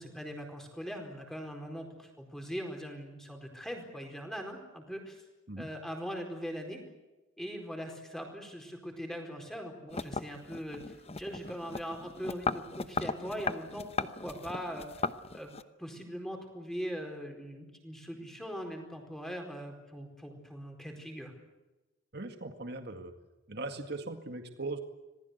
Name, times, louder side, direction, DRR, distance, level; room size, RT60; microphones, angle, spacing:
voice 1, 0.0-5.2 5.6-6.8 7.4-15.0 15.3-15.5 15.8-21.3, equal, 5° left, 3 dB, 4.5 m, -41 dB
sound 1, 9.9-15.6, left 4 dB, 30° left, 0.9 m, -37 dB
voice 2, 22.1-23.1 23.5-24.8, right 2 dB, 55° right, 6 dB, 2.0 m, -39 dB
27.0 x 20.0 x 8.1 m, 1.1 s
head